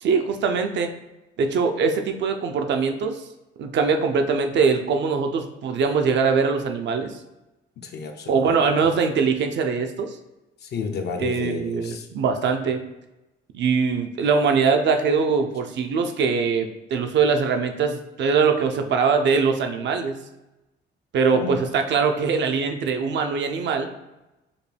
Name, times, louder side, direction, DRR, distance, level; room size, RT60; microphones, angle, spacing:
voice 1, 0.0-0.9 1.4-3.2 3.6-7.2 8.3-10.2 11.2-12.8 13.5-20.2 21.1-23.9, right 5 dB, 65° right, 5 dB, 0.5 m, -22 dB
voice 2, 7.8-8.7 10.6-12.1 21.3-21.7, left 5 dB, 55° left, 4 dB, 0.5 m, -32 dB
5.1 x 2.2 x 3.2 m, 0.99 s
cardioid pair, 90°, 20 cm